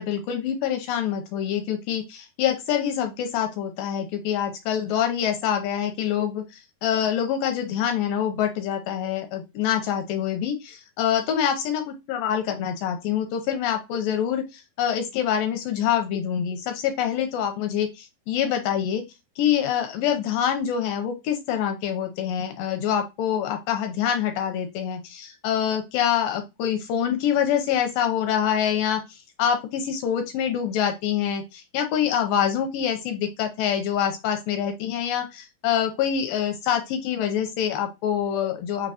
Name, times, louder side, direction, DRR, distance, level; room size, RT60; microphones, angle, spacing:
voice 1, 0.0-19.0 19.4-38.9, left 9 dB, 80° left, 6 dB, 2.2 m, -25 dB
6.5 x 2.9 x 2.8 m, 0.23 s
omnidirectional pair, 4.4 m